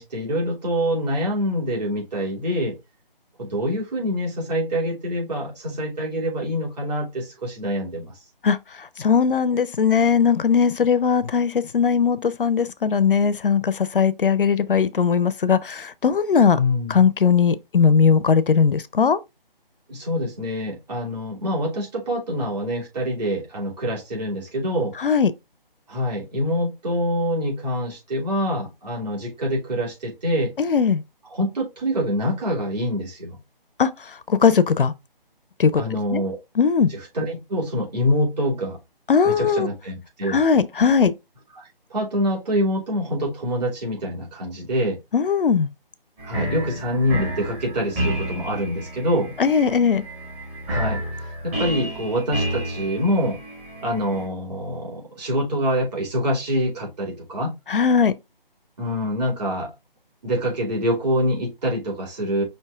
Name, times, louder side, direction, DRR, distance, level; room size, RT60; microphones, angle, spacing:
voice 1, 0.0-2.8 3.4-8.1 16.6-17.1 19.9-24.9 25.9-30.5 31.3-33.4 35.7-36.4 36.9-38.8 39.2-40.4 41.6-45.0 46.2-49.3 50.7-51.0 51.4-53.4 53.8-57.5 58.8-59.7 60.2-62.4, equal, 45° right, 2.9 m, -25 dB
voice 2, 9.0-16.6 16.9-19.2 25.0-25.3 30.6-31.0 33.8-33.9 34.3-34.9 35.6-35.8 36.1-36.2 36.6-36.9 39.1-39.7 40.3-41.1 45.1-45.7 49.4-50.0 57.7-58.1, left 6 dB, 65° left, 0.6 m, -19 dB
sound 1, 46.2-54.3, right 1 dB, 15° right, 1.0 m, -30 dB
5.7 x 2.8 x 3.4 m
figure-of-eight pair, 160°, 29 cm